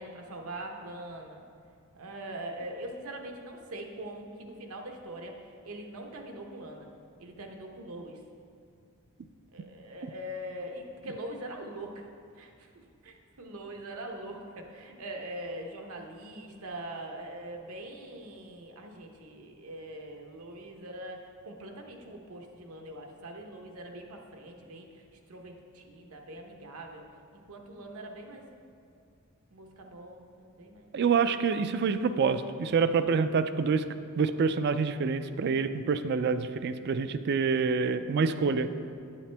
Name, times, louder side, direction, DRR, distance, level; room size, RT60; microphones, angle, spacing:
voice 1, 0.0-1.4 1.9-6.9 7.2-8.2 9.5-12.1 12.4-25.0 25.3-27.0 27.3-28.4 29.5-30.9, right 1 dB, 80° right, 2 dB, 0.9 m, -42 dB
voice 2, 30.9-33.8 34.2-38.7, right 5 dB, 50° right, 11 dB, 0.4 m, -27 dB
9.0 x 8.4 x 3.4 m, 2.4 s
head